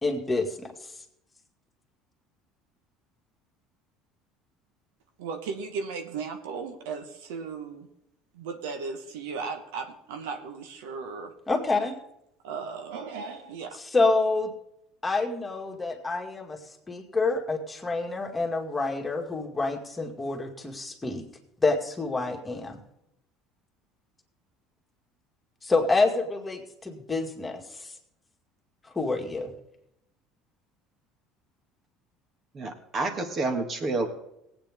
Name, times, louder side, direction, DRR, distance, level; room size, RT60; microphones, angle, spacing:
voice 1, 0.0-0.7 11.5-12.0 13.9-14.5 15.0-16.6 16.9-21.2 21.6-22.8 25.6-27.9 28.9-29.5, left 3 dB, 15° left, 1 dB, 2.1 m, -27 dB
voice 2, 5.2-7.9 8.3-11.3 12.4-13.8, right 5 dB, 85° right, 6 dB, 1.2 m, -36 dB
voice 3, 32.5-34.1, right 3 dB, 40° right, 5 dB, 2.0 m, -29 dB
18.0 x 8.7 x 3.7 m, 0.80 s
supercardioid pair, 85°, 0 cm